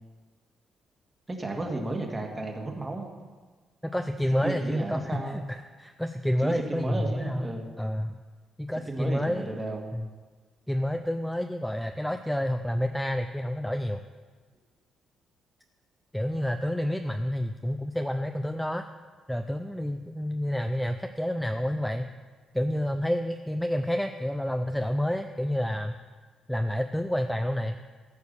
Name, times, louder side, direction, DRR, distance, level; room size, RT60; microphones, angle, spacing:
voice 1, 1.3-3.1 4.4-5.4 6.4-7.7 8.9-9.8, right 2 dB, 20° right, 2 dB, 1.8 m, -33 dB
voice 2, 3.9-7.5 7.8-8.1 8.6-9.6 9.9-10.1 10.7-14.0 16.1-18.8 19.3-22.1 22.5-26.0 26.5-27.8, equal, 5° left, 6 dB, 0.5 m, -29 dB
14.0 x 4.7 x 6.9 m, 1.4 s
cardioid pair, 90°, 0 cm